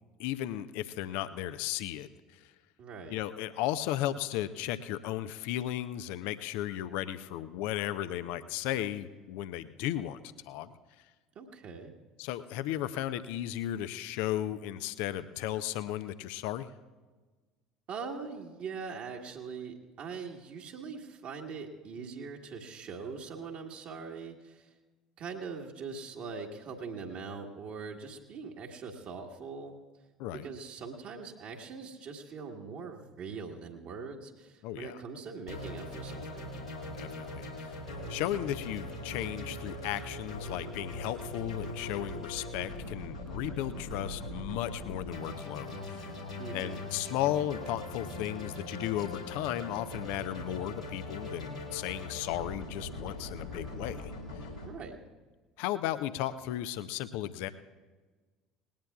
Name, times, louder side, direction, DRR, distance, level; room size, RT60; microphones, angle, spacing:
voice 1, 0.2-2.5 3.1-10.7 12.2-16.7 30.2-30.5 34.6-35.0 36.9-37.8 38.1-46.1 46.5-54.5 55.6-57.5, left 13 dB, 55° left, 13 dB, 0.6 m, -35 dB
voice 2, 2.8-3.1 11.3-11.9 17.9-24.7 25.2-29.7 30.4-36.5 46.4-46.8 54.6-55.0, right 5 dB, 45° right, 0 dB, 1.5 m, -42 dB
sound 1, 35.5-54.7, left 1 dB, 90° left, 2.6 m, -41 dB
19.5 x 18.0 x 2.4 m, 1.3 s
figure-of-eight pair, 65°, 3 cm